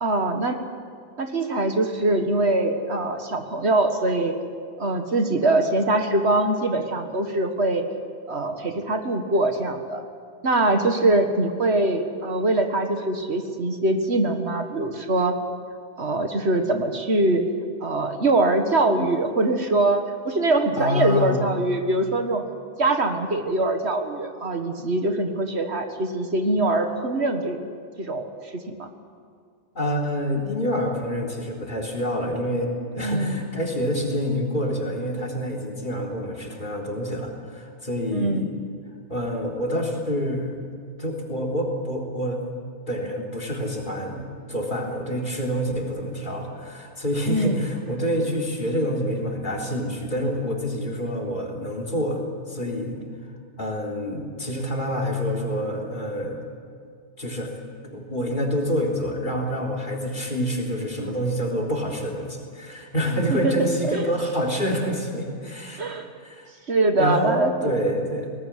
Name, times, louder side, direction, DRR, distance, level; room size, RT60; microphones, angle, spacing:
voice 1, 0.0-0.6 1.2-4.4 4.8-7.9 8.3-10.0 10.4-15.4 16.0-17.4 17.8-22.4 22.8-27.6 28.0-28.9 33.0-33.5 38.1-38.5 47.3-47.6 63.3-63.5 63.8-64.0 65.8-66.1 66.7-67.7, right 2 dB, 70° right, 6 dB, 2.0 m, -23 dB
voice 2, 20.8-21.4 29.7-38.5 39.1-40.7 41.0-42.4 42.9-53.0 53.6-56.4 57.2-57.5 57.8-65.8 66.2-66.5 67.0-68.3, equal, 45° left, 2 dB, 4.0 m, -27 dB
22.5 x 19.0 x 9.8 m, 2.2 s
omnidirectional pair, 1.2 m